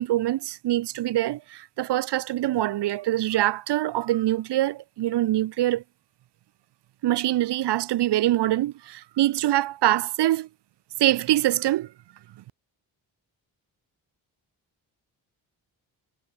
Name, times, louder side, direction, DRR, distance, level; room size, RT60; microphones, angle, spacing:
voice 1, 0.0-5.8 7.0-10.5 11.0-11.9, right 14 dB, 60° right, 0.6 m, -24 dB
supercardioid pair, 50°, 45 cm